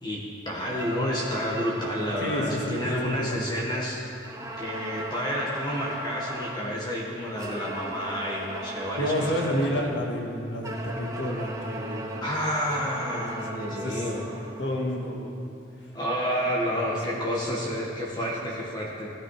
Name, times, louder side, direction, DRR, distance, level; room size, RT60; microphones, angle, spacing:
voice 1, 0.0-4.0 4.6-9.8 12.2-14.3 15.9-19.1, equal, 25° left, -4 dB, 1.6 m, -30 dB
sound 1, 0.7-3.8 4.2-6.8 7.3-10.0 10.6-14.9, right 1 dB, 20° right, 1.1 m, -38 dB
voice 2, 2.2-3.5 9.0-12.3 13.1-13.2 13.5-14.1 14.6-15.4 16.8-17.6 18.2-18.3, equal, 70° left, 0 dB, 2.1 m, -30 dB
17.0 x 11.5 x 5.0 m, 2.8 s
head